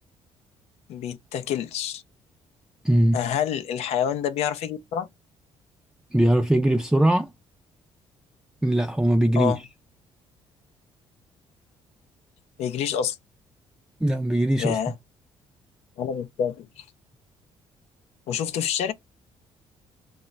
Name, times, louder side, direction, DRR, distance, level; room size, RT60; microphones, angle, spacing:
voice 1, 0.9-2.0 3.1-5.1 9.4-9.6 12.6-13.2 14.6-15.0 16.0-16.8 18.3-18.9, left 9 dB, 75° left, 0.5 m, -27 dB
voice 2, 2.8-3.2 6.1-7.3 8.6-9.6 14.0-14.8, right 1 dB, 5° right, 0.4 m, -21 dB
2.3 x 2.0 x 3.8 m
cardioid pair, 90°, 11 cm